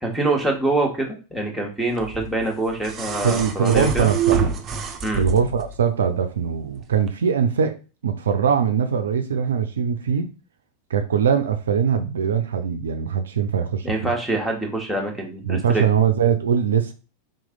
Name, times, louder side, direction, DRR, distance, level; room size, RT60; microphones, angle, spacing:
voice 1, 0.0-4.1 5.0-5.2 13.8-15.8, right 2 dB, ahead, 1.4 m, -25 dB
sound 1, 2.0-5.7 7.0-7.1, right 6 dB, 30° right, 0.6 m, -27 dB
voice 2, 3.2-4.6 5.2-7.8 8.0-10.3 10.9-14.1 15.4-16.9, right 7 dB, 70° right, 0.5 m, -21 dB
3.8 x 3.1 x 3.8 m
figure-of-eight pair, 90°, 0 cm